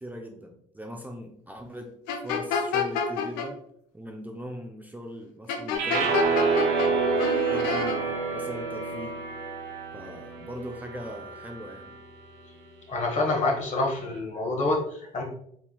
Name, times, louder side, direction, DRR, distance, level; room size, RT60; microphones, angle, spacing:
voice 1, 0.0-1.9 2.2-3.6 3.9-6.1 6.8-9.2 9.9-11.9, equal, 10° right, 2 dB, 0.5 m, -40 dB
sound 1, 2.1-3.5 5.5-6.9 7.2-8.0, left 6 dB, 80° left, 0.6 m, -28 dB
sound 2, 5.7-12.0, right 5 dB, 80° right, 0.8 m, -28 dB
voice 2, 12.9-15.2, left 2 dB, 45° left, 0 dB, 1.4 m, -27 dB
4.5 x 3.5 x 2.3 m, 0.69 s
hypercardioid pair, 65°, 17 cm